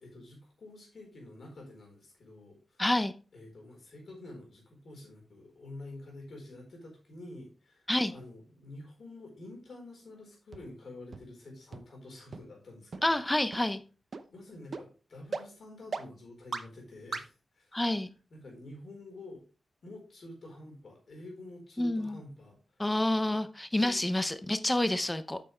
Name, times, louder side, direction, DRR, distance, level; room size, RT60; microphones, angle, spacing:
voice 1, 0.0-2.8 3.3-13.2 14.3-17.8 18.3-19.4 19.8-22.6 23.8-24.0, left 2 dB, 60° left, 0 dB, 4.2 m, -48 dB
voice 2, 2.8-3.1 7.9-8.1 13.0-13.8 17.7-18.1 21.8-22.2 22.8-25.4, left 1 dB, 15° left, 11 dB, 0.6 m, -28 dB
sound 1, 10.5-10.6 11.1-11.2 11.7-11.8 12.3-12.4 12.9-13.0 13.5-13.6 14.1-14.2 14.7-14.8 15.3-15.4 15.9-16.0 16.5-16.6 17.1-17.2, right 4 dB, 45° right, 0.8 m, -36 dB
8.5 x 6.7 x 3.3 m, 0.35 s
wide cardioid pair, 105°, 0 cm